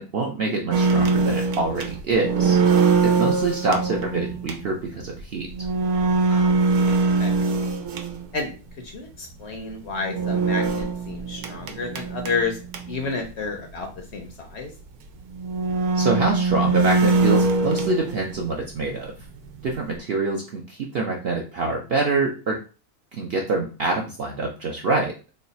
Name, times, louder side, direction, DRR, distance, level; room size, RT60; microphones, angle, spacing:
voice 1, 0.0-2.6 3.0-5.5 15.9-19.1 19.6-22.6 23.1-25.1, right 3 dB, 65° right, 0 dB, 0.6 m, -25 dB
sound 1, 0.7-8.5 10.0-13.1 13.4-13.5 13.8-13.9 14.7-14.8 15.3-18.5 18.8-20.0, right 4 dB, 85° right, 1.2 m, -22 dB
voice 2, 6.3-7.4 8.3-8.5 8.8-12.6 12.9-14.7, left 4 dB, 60° left, 3 dB, 0.8 m, -31 dB
3.2 x 2.3 x 4.0 m, 0.35 s
omnidirectional pair, 1.5 m